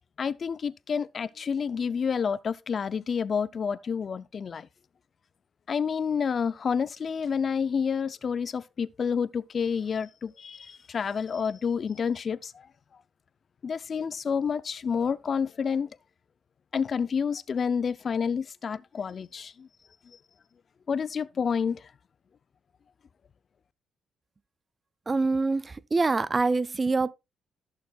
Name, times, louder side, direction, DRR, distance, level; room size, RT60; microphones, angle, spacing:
voice 1, 0.2-4.7 5.7-12.7 13.6-15.9 16.7-19.7 20.9-21.8, left 6 dB, 45° left, 0.5 m, -29 dB
voice 2, 25.1-27.1, right 3 dB, 30° right, 0.4 m, -25 dB
14.5 x 6.6 x 2.4 m
cardioid pair, 90°, 0 cm